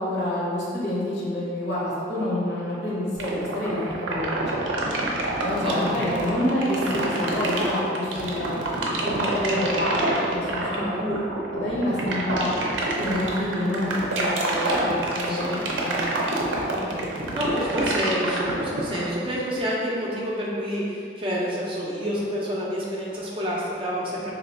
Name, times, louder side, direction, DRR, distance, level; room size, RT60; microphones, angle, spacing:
voice 1, 0.0-4.9 5.4-8.6 9.0-12.5 13.0-16.2, left 1 dB, 60° left, -7 dB, 1.0 m, -28 dB
fizzy underwater break, 3.2-19.1, right 2 dB, 90° right, 0.5 m, -27 dB
voice 2, 5.3-5.9 7.0-7.2 8.1-8.3 10.6-11.0 12.9-13.3 14.6-15.6 16.7-24.3, equal, 30° right, -5 dB, 0.5 m, -29 dB
2.9 x 2.4 x 4.2 m, 2.5 s
head